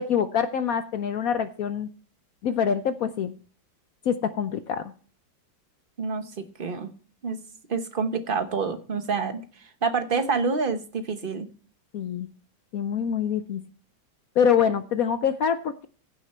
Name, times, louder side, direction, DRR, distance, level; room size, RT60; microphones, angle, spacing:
voice 1, 0.0-1.9 2.4-3.3 4.1-4.9 11.9-12.3 12.7-13.6 14.4-15.9, left 7 dB, 65° left, 11 dB, 0.9 m, -25 dB
voice 2, 6.0-6.9 7.2-7.4 7.7-9.4 9.8-11.5, right 4 dB, 35° right, 8 dB, 0.9 m, -27 dB
15.5 x 6.5 x 4.3 m, 0.41 s
omnidirectional pair, 2.1 m